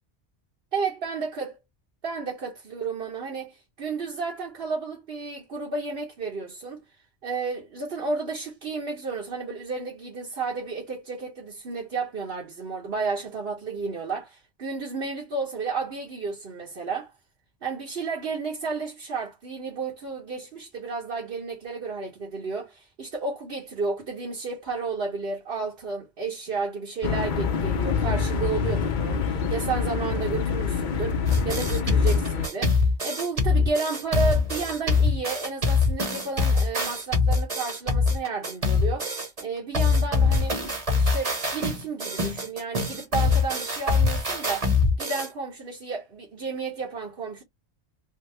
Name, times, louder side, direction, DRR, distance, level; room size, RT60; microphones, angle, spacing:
voice 1, 0.7-1.5 2.0-6.8 7.2-17.1 17.6-40.6 40.9-44.7 45.0-47.4, right 4 dB, 60° right, 1.2 m, -32 dB
sound 1, 27.0-32.5, left 6 dB, 55° left, 0.6 m, -26 dB
sound 2, 31.3-39.4 39.7-45.3, left 4 dB, 35° right, 1.0 m, -23 dB
3.5 x 2.1 x 3.2 m
omnidirectional pair, 1.1 m